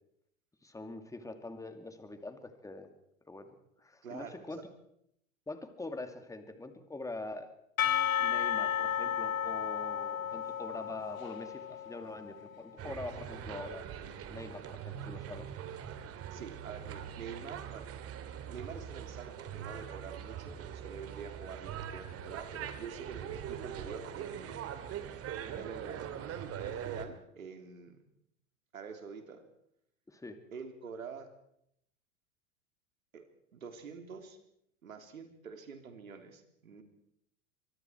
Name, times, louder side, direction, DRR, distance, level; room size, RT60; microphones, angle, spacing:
voice 1, 0.6-2.9 3.3-4.6 5.5-7.5 8.2-13.9 14.3-15.5 30.1-30.4, left 2 dB, 10° left, 7 dB, 2.6 m, -44 dB
voice 2, 4.0-4.6 16.3-17.8 18.5-24.5 25.4-26.1 26.6-28.0 28.7-29.4 30.5-31.3 33.1-33.2 33.5-34.4 34.8-36.8, right 6 dB, 85° right, 5 dB, 3.5 m, -46 dB
Percussion / Church bell, 7.8-12.6, left 9 dB, 85° left, 1.0 m, -33 dB
sound 1, 12.8-27.1, right 9 dB, 35° right, 2.5 m, -42 dB
24.5 x 23.0 x 4.6 m, 0.75 s
hypercardioid pair, 95°, 40 cm